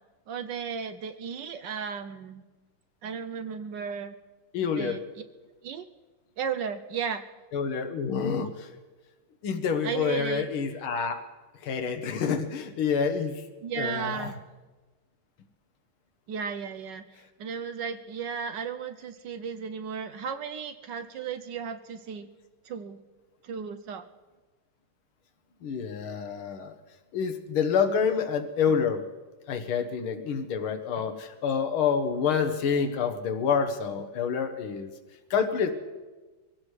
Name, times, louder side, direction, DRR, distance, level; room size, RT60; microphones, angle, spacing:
voice 1, 0.3-2.4 3.0-4.1 4.8-5.0 5.6-5.8 6.4-7.2 9.8-10.5 13.6-14.4 16.3-17.0 17.4-22.3 22.6-23.0 23.4-24.0, right 6 dB, 70° right, 8 dB, 1.2 m, -34 dB
voice 2, 4.5-5.0 7.5-8.7 9.4-11.2 11.6-13.4 13.8-14.3 25.6-26.7 27.1-29.0 29.5-34.9 35.3-35.8, left 6 dB, 85° left, 7 dB, 1.9 m, -28 dB
24.0 x 16.5 x 3.2 m, 1.3 s
omnidirectional pair, 2.2 m